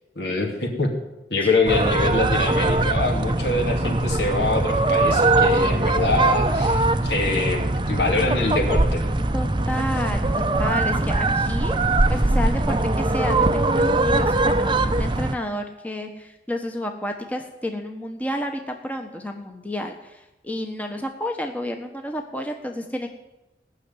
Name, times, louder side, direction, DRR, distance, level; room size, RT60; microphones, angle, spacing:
voice 1, 0.2-0.9 1.3-9.0, left 3 dB, 75° left, 1 dB, 2.8 m, -24 dB
sound 1, 1.7-15.4, right 2 dB, 25° right, 0.6 m, -21 dB
voice 2, 9.3-11.8 12.1-23.1, left 1 dB, 10° left, 3 dB, 1.0 m, -30 dB
17.5 x 6.5 x 9.6 m, 1.0 s
head